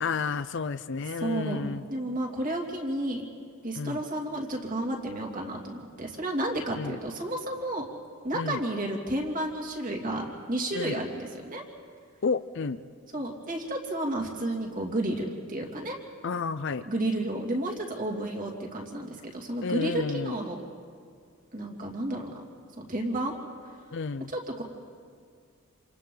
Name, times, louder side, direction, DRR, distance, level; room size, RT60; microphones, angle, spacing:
voice 1, 0.0-1.8 3.8-4.0 6.8-7.0 8.3-8.6 10.7-10.9 12.2-12.8 16.2-16.8 19.6-20.3 23.9-24.3, left 4 dB, 55° left, 13 dB, 0.5 m, -31 dB
voice 2, 1.2-3.2 3.6-7.8 8.2-11.6 13.1-16.0 16.8-20.6 21.5-22.4 22.8-23.4 24.3-24.6, right 1 dB, 40° right, 0 dB, 2.7 m, -32 dB
28.0 x 27.5 x 3.9 m, 2.2 s
head